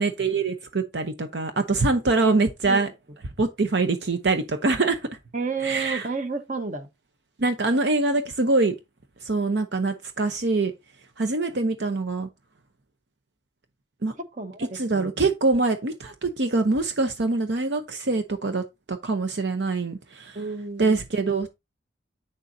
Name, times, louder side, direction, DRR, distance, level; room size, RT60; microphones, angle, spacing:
voice 1, 0.0-2.9 3.4-5.0 5.6-6.1 7.4-8.7 9.2-10.7 11.2-12.3 14.0-14.1 14.6-20.4 20.8-21.5, right 3 dB, 65° right, 0.8 m, -24 dB
voice 2, 2.2-2.8 5.3-6.9 14.3-15.3 20.3-21.0, right 4 dB, 40° right, 1.1 m, -31 dB
8.8 x 6.8 x 2.7 m
head